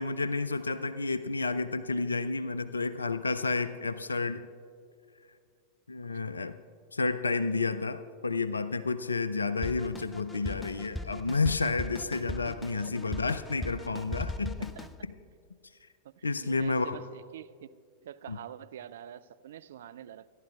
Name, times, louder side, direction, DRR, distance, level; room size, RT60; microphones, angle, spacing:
voice 1, 0.0-4.5 5.9-6.6 6.9-14.7 16.2-17.0 18.3-18.4, left 3 dB, 75° left, 0.3 m, -30 dB
Drum kit, 9.6-15.0, left 1 dB, 10° left, 0.5 m, -39 dB
voice 2, 16.0-17.7 18.0-20.3, right 10 dB, 60° right, 0.3 m, -46 dB
25.5 x 11.5 x 2.3 m
figure-of-eight pair, 90°, 0 cm